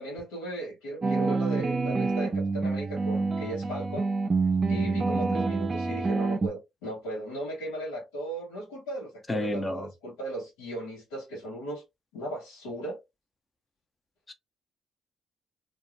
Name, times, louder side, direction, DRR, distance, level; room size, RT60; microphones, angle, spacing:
voice 1, 0.0-4.1 4.7-11.8 12.1-13.0, right 1 dB, 90° left, 0.9 m, -37 dB
sound 1, 1.0-6.5, right 3 dB, 40° right, 0.4 m, -27 dB
voice 2, 9.3-9.9 14.3-14.4, left 1 dB, 25° left, 0.7 m, -30 dB
2.4 x 2.2 x 3.0 m
supercardioid pair, 55°, 0 cm